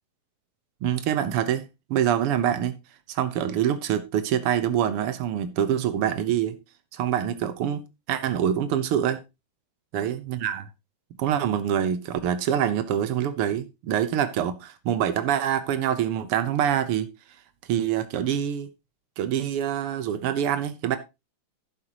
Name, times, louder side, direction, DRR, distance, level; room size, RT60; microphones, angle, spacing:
voice 1, 0.8-2.8 3.1-6.6 6.9-9.2 9.9-10.7 11.2-17.1 17.7-18.7 19.2-21.0, right 10 dB, 75° right, 1.3 m, -25 dB
11.5 x 9.6 x 2.9 m
omnidirectional pair, 3.9 m